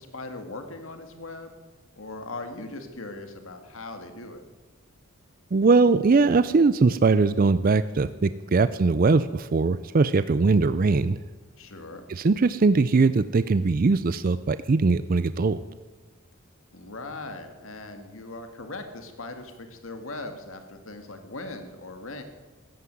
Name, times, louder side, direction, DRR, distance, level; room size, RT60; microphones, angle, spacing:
voice 1, 0.0-1.6 2.0-4.4 11.6-12.1 16.7-22.2, left 2 dB, 65° left, 7 dB, 1.9 m, -39 dB
voice 2, 5.5-11.2 12.1-15.6, right 4 dB, 40° right, 14 dB, 0.4 m, -21 dB
14.5 x 9.6 x 9.3 m, 1.3 s
head